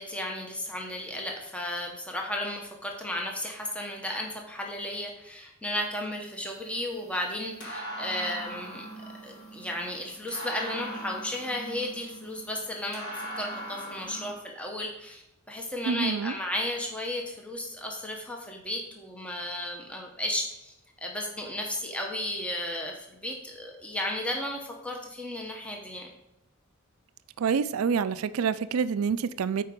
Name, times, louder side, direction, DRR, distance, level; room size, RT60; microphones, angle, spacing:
voice 1, 0.0-8.8 9.2-15.2 15.5-20.7 21.0-26.1, left 1 dB, 5° left, 0 dB, 0.9 m, -34 dB
sound 1, 6.3-14.3, right 1 dB, 60° left, 3.3 m, -41 dB
voice 2, 15.8-16.3 27.4-29.6, right 6 dB, 85° right, 14 dB, 0.4 m, -27 dB
9.0 x 4.6 x 5.1 m, 0.85 s
head